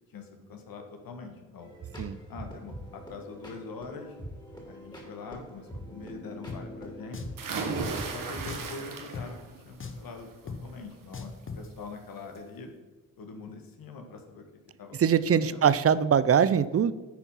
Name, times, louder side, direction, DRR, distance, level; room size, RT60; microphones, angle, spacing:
voice 1, 0.1-1.7 2.3-4.1 4.7-7.3 8.1-9.4 9.6-11.3 11.6-12.7 13.2-14.4 14.8-15.0 15.4-15.7, left 4 dB, 75° left, 4 dB, 1.4 m, -43 dB
sound 1, 1.6-8.6, equal, 10° left, 2.7 m, -44 dB
Drum, 6.5-6.6 7.1-7.4 7.8-7.9 8.5-8.7 9.1-9.3 9.8-10.1 10.5-10.6 11.1-11.7, left 4 dB, 35° left, 1.0 m, -39 dB
sound 2, 7.4-9.5 9.9-10.3 11.7-11.8 12.2-12.3, right 4 dB, 60° right, 1.4 m, -35 dB
voice 2, 15.0-16.9, right 8 dB, 40° right, 16 dB, 0.5 m, -22 dB
10.0 x 4.5 x 5.4 m, 1.2 s
cardioid pair, 60°, 36 cm